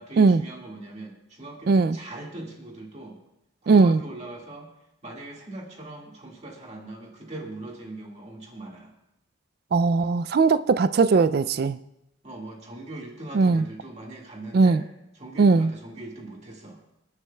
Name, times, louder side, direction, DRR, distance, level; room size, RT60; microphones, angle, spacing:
voice 1, 0.0-3.2 3.6-4.7 5.0-8.9 12.2-14.8 15.2-16.8, right 2 dB, 35° right, 1.9 m, -40 dB
voice 2, 1.7-2.0 3.7-4.0 9.7-11.8 13.3-13.7 14.5-14.8 15.4-15.7, right 4 dB, 50° right, 0.3 m, -19 dB
26.5 x 9.6 x 2.3 m
head